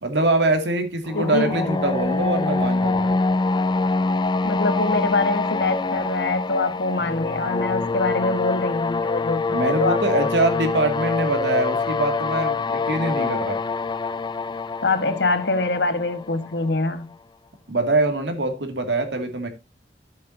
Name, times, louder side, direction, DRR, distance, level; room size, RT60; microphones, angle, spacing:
voice 1, 0.0-3.1 9.5-13.6 17.7-19.5, right 2 dB, 75° right, 2.3 m, -23 dB
voice 2, 1.1-1.5 4.4-10.3 14.8-17.1, left 3 dB, 70° left, 1.5 m, -24 dB
sound 1, 1.1-16.9, left 3 dB, 25° left, 0.5 m, -25 dB
13.0 x 7.6 x 2.7 m
head